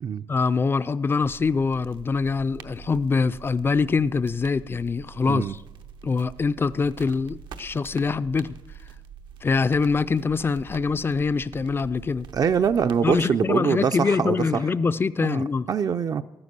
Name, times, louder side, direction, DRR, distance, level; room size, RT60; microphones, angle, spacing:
voice 1, 0.3-5.6 6.0-8.5 9.4-12.3 13.0-15.7, left 4 dB, 30° left, 17 dB, 0.4 m, -24 dB
sound 1, 1.2-13.1, right 7 dB, 85° right, 0.8 m, -45 dB
voice 2, 12.3-14.6 15.2-16.2, right 7 dB, 50° right, 9 dB, 0.4 m, -24 dB
13.5 x 9.6 x 6.6 m, 1.1 s
cardioid pair, 115°, 8 cm